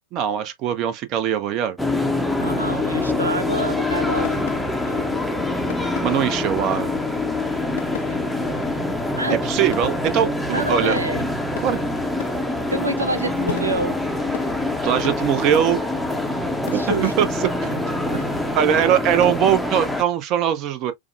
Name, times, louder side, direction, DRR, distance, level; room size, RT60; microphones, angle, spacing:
voice 1, 0.1-1.8 6.0-7.0 9.3-11.0 11.6-11.8 14.8-15.8 16.7-17.8 18.1-18.2 18.6-20.9, right 9 dB, 40° right, 0.6 m, -21 dB
sound 1, 1.8-20.0, left 2 dB, ahead, 0.6 m, -25 dB
voice 2, 2.4-4.5 4.9-5.2 8.1-8.2 9.2-9.4 10.5-11.3 12.7-14.0 16.7-17.3 18.1-18.3, right 2 dB, 80° right, 0.4 m, -27 dB
sound 2, 4.2-19.3, left 10 dB, 55° left, 0.4 m, -40 dB
4.8 x 2.1 x 2.3 m
figure-of-eight pair, 90°, 0 cm